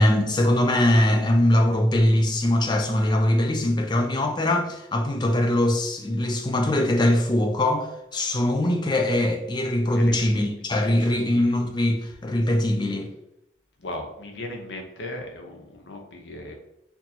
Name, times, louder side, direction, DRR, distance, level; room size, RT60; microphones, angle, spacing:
voice 1, 0.0-13.1, left 1 dB, 25° left, 0.4 m, -22 dB
voice 2, 9.9-10.5 10.8-11.2 13.8-16.5, left 1 dB, 65° left, 0.7 m, -37 dB
4.3 x 2.7 x 2.8 m
head